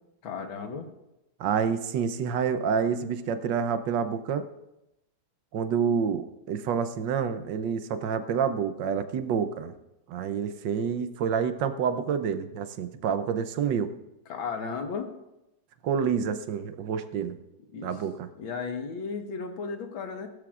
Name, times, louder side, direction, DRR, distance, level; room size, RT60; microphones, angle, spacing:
voice 1, 0.2-0.9 14.3-15.1 17.7-18.0 18.4-20.3, left 5 dB, 85° left, 5 dB, 2.1 m, -34 dB
voice 2, 1.4-4.4 5.5-9.7 10.1-13.9 15.8-17.4 17.8-18.3, right 7 dB, 70° right, 10 dB, 1.3 m, -28 dB
19.5 x 12.5 x 2.5 m, 0.91 s
omnidirectional pair, 2.1 m